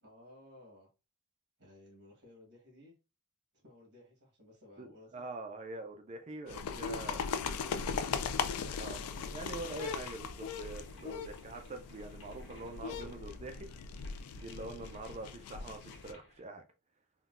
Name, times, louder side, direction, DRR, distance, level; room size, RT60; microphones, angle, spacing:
voice 1, 0.0-0.9 1.6-2.9 3.6-5.3 7.5-10.0, left 1 dB, 50° right, 1.5 m, -58 dB
voice 2, 4.8-7.2 8.8-13.7 14.3-16.6, right 2 dB, 30° right, 0.4 m, -44 dB
sound 1, 6.5-16.1, left 6 dB, 75° left, 0.4 m, -39 dB
sound 2, 8.7-16.4, left 2 dB, 60° left, 1.0 m, -62 dB
3.7 x 2.2 x 2.4 m
head